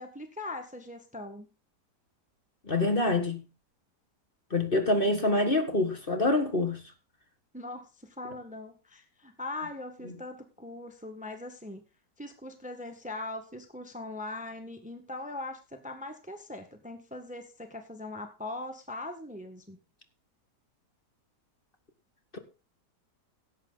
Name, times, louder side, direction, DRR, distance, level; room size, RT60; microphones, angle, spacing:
voice 1, 0.0-1.5 7.5-11.8 12.2-19.8, left 2 dB, 5° right, 1.4 m, -41 dB
voice 2, 2.7-3.4 4.5-6.8 22.3-22.4, left 2 dB, 30° left, 1.9 m, -26 dB
17.0 x 8.3 x 4.0 m
omnidirectional pair, 1.8 m